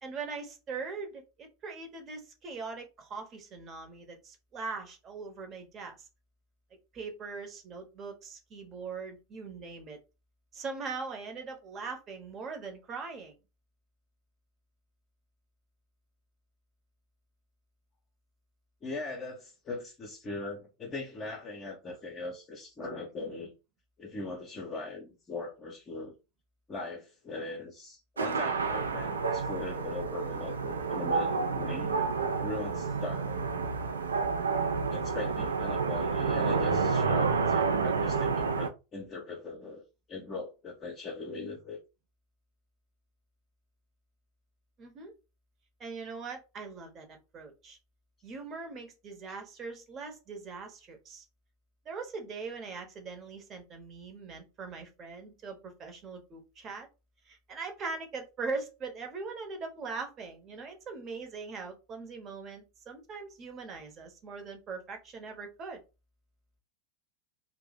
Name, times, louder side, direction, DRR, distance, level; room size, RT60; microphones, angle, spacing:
voice 1, 0.0-6.0 6.9-10.0 10.5-13.4 44.8-45.1 45.8-47.8 48.2-51.2 51.8-56.9 57.3-65.8, right 4 dB, 30° right, 0.8 m, -41 dB
voice 2, 18.8-23.5 24.0-26.1 26.7-31.9 32.4-33.5 34.8-39.8 40.1-41.8, left 3 dB, 25° left, 0.6 m, -40 dB
sound 1, 28.2-38.7, right 5 dB, 75° right, 0.3 m, -29 dB
2.6 x 2.0 x 3.9 m
figure-of-eight pair, 85°, 0 cm